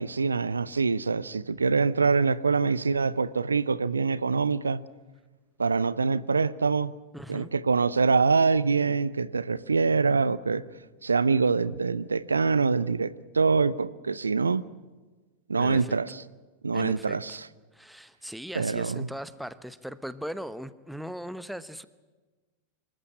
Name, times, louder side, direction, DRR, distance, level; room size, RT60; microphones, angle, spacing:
voice 1, 0.0-4.8 5.6-6.9 7.3-10.6 11.0-14.6 15.5-16.2 16.6-17.5 18.5-19.1, right 4 dB, 75° right, 19 dB, 0.6 m, -25 dB
voice 2, 7.1-7.5 15.6-16.0 16.7-17.4 17.7-21.9, equal, ahead, 15 dB, 0.9 m, -39 dB
25.5 x 14.5 x 9.7 m, 1.3 s
figure-of-eight pair, 90°, 0 cm